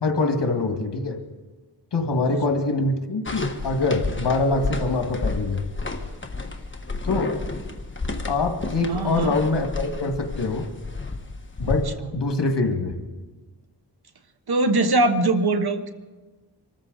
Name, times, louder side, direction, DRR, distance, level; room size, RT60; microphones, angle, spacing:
voice 1, 0.0-1.2 1.9-5.6 7.0-7.3 8.3-10.7 11.6-11.9 12.1-12.9, left 3 dB, 75° left, 4 dB, 2.0 m, -24 dB
sound 1, 3.3-11.8, left 3 dB, 30° left, 1.4 m, -31 dB
voice 2, 8.9-9.3 14.5-15.9, right 2 dB, 60° right, 9 dB, 1.2 m, -21 dB
25.0 x 14.0 x 4.0 m, 1.3 s
wide cardioid pair, 75°, 42 cm